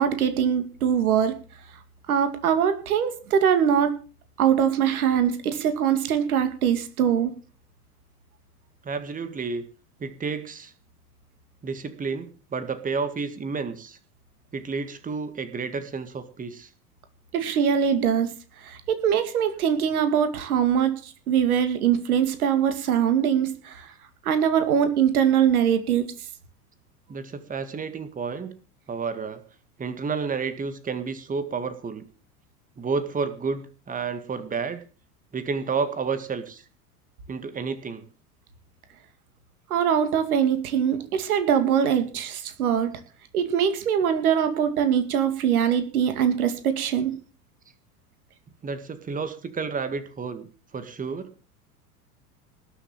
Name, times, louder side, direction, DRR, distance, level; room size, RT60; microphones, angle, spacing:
voice 1, 0.0-1.3 2.1-3.9 4.4-7.3 17.3-18.3 18.6-23.9 24.2-26.1 39.7-42.9 43.3-47.2, right 8 dB, 65° right, 9 dB, 2.5 m, -22 dB
voice 2, 8.8-9.6 10.0-10.7 11.6-14.0 14.5-16.7 27.1-28.5 28.9-29.4 29.8-32.0 32.8-34.8 35.3-36.6 37.3-38.1 48.6-50.5 50.7-51.3, right 5 dB, 15° right, 11 dB, 1.9 m, -31 dB
19.5 x 7.0 x 7.4 m, 0.38 s
figure-of-eight pair, 85°, 46 cm